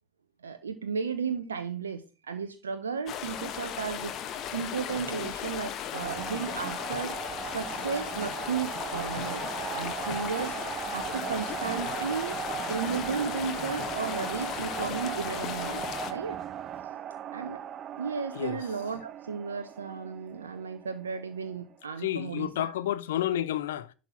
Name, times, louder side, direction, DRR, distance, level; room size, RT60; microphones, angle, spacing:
voice 1, 0.4-4.1 4.5-7.2 7.4-9.4 9.7-10.6 10.9-12.4 12.7-16.4 17.3-17.6 18.0-22.7, right 6 dB, 80° right, 0.7 m, -34 dB
sound 1, 3.1-16.1, left 9 dB, 45° left, 1.2 m, -36 dB
sound 2, 5.9-21.7, right 10 dB, 40° right, 0.5 m, -38 dB
voice 2, 22.0-23.9, left 12 dB, 70° left, 0.6 m, -30 dB
10.5 x 4.1 x 5.9 m
figure-of-eight pair, 75°, 0 cm